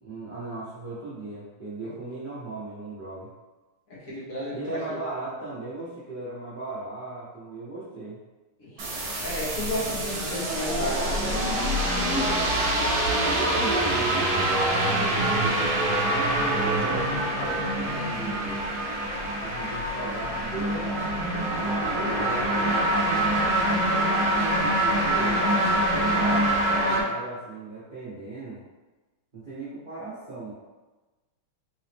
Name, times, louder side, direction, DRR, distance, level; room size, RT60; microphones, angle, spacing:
voice 1, 0.0-3.3 4.5-8.2 13.2-18.6 19.4-21.1 21.5-23.5 24.6-25.5 25.9-28.6 29.3-30.5, right 2 dB, 80° right, -10 dB, 0.4 m, -37 dB
voice 2, 3.9-5.0 8.6-11.7 16.6-17.0, equal, 45° left, -10 dB, 1.6 m, -34 dB
sound 1, 8.8-27.0, right 1 dB, 65° right, 1.0 m, -25 dB
3.9 x 2.8 x 3.3 m, 1.2 s
omnidirectional pair, 2.4 m